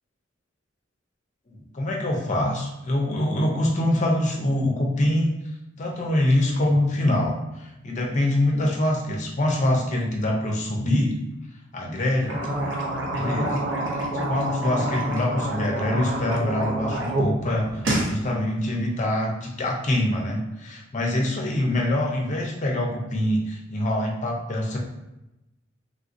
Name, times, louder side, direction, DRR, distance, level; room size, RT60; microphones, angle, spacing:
voice 1, 1.5-5.3 5.8-11.2 11.7-12.5 13.1-17.8 18.1-24.8, left 1 dB, 40° left, 0 dB, 0.5 m, -24 dB
sound 1, 12.2-17.3 17.6-18.1, right 1 dB, 70° right, 0.6 m, -27 dB
3.3 x 2.6 x 2.5 m, 0.93 s
head